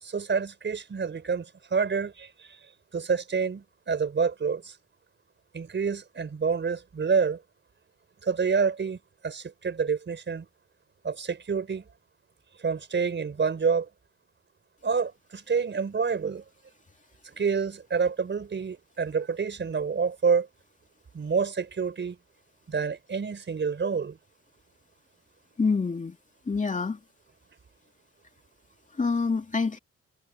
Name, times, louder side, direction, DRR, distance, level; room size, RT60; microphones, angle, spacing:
voice 1, 0.0-2.6 2.9-4.8 5.5-7.4 8.2-10.5 11.0-11.9 12.6-13.9 14.8-16.4 17.4-20.5 21.1-22.2 22.7-24.2, right 5 dB, 40° right, 4.6 m, -28 dB
voice 2, 25.6-26.2 26.5-27.0 29.0-29.8, left 4 dB, 25° left, 2.5 m, -26 dB
cardioid pair, 90°, 30 cm